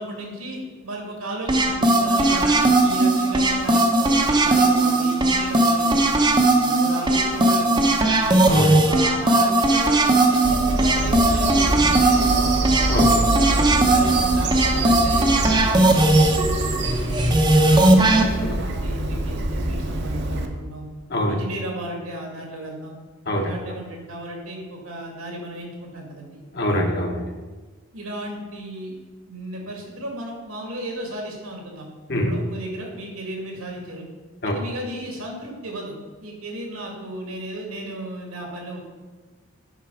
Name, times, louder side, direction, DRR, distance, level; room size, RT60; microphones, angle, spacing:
voice 1, 0.0-8.3 8.8-12.6 13.2-20.8 21.3-23.0 23.3-26.4 27.9-28.9 29.3-31.9 32.2-34.1 34.4-38.8, right 1 dB, 85° right, 0 dB, 2.3 m, -35 dB
sound 1, 1.5-18.2, right 2 dB, 20° right, 0.7 m, -18 dB
voice 2, 8.5-8.9 12.9-13.6 18.5-18.6 21.1-21.4 23.3-23.4 26.5-27.3 32.1-32.3 34.4-34.5, equal, 50° left, 1 dB, 1.2 m, -24 dB
Bird vocalization bird call bird song, 10.4-20.5, right 2 dB, 50° right, 0.8 m, -25 dB
9.1 x 5.9 x 4.9 m, 1.4 s
head